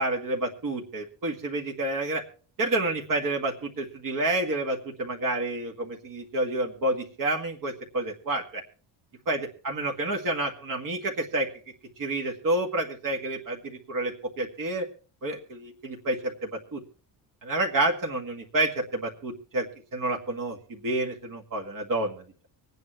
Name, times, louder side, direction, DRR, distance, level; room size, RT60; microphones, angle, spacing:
voice 1, 0.0-2.2 2.6-8.6 9.3-11.5 12.0-14.9 15.2-16.8 17.4-19.7 19.9-20.6 20.8-22.2, right 2 dB, 50° right, 1 dB, 1.9 m, -29 dB
25.5 x 9.2 x 3.0 m, 0.41 s
cardioid pair, 135°, 41 cm